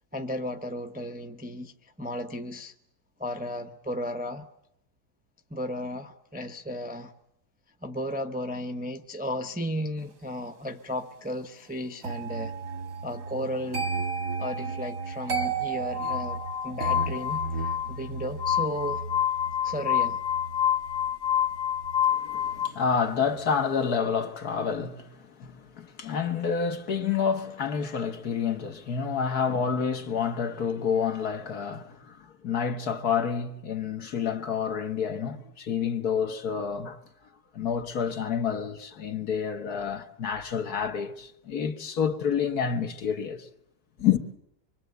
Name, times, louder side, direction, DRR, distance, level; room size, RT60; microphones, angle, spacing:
voice 1, 0.1-2.7 3.2-4.5 5.5-7.1 7.8-12.5 13.0-13.9 14.4-19.0 19.6-20.2, equal, 10° right, 0.6 m, -34 dB
sound 1, 12.0-23.0 23.3-23.7, right 4 dB, 85° right, 2.1 m, -35 dB
Glass, 15.9-22.7, left 10 dB, 30° left, 1.1 m, -28 dB
voice 2, 22.1-37.0 37.5-43.5 44.0-44.2, left 6 dB, 65° left, 1.9 m, -29 dB
26.0 x 23.5 x 8.1 m
omnidirectional pair, 1.8 m